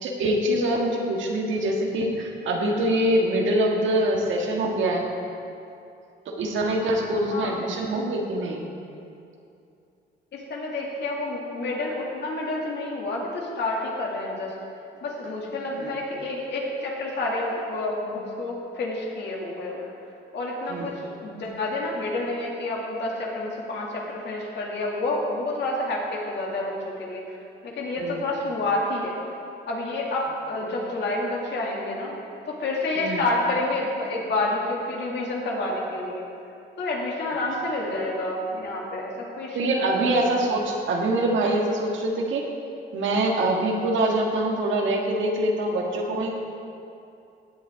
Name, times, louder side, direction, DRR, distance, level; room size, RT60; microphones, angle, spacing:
voice 1, 0.0-5.1 6.3-8.7 15.7-15.9 20.7-20.9 28.0-28.2 33.0-33.2 39.5-42.5 42.9-46.3, right 1 dB, 75° right, 0 dB, 1.7 m, -24 dB
voice 2, 10.3-14.5 15.0-19.9 20.3-27.4 27.6-29.2 29.7-32.1 32.5-36.3 36.8-40.1, left 2 dB, 60° left, -3 dB, 2.4 m, -29 dB
16.5 x 7.9 x 3.7 m, 2.6 s
cardioid pair, 90°, 20 cm